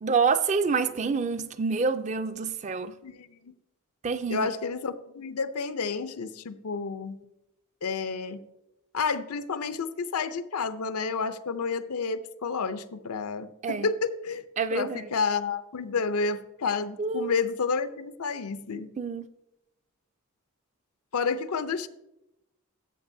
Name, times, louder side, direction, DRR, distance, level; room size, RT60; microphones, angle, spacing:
voice 1, 0.0-3.0 4.0-4.5 13.6-13.9 14.6-15.0 17.0-17.4 19.0-19.3, right 5 dB, 30° right, 0.4 m, -27 dB
voice 2, 3.0-3.5 4.3-7.2 7.8-8.5 8.9-14.4 14.7-18.9 21.1-21.9, left 5 dB, 85° left, 0.6 m, -30 dB
13.5 x 7.5 x 2.7 m
head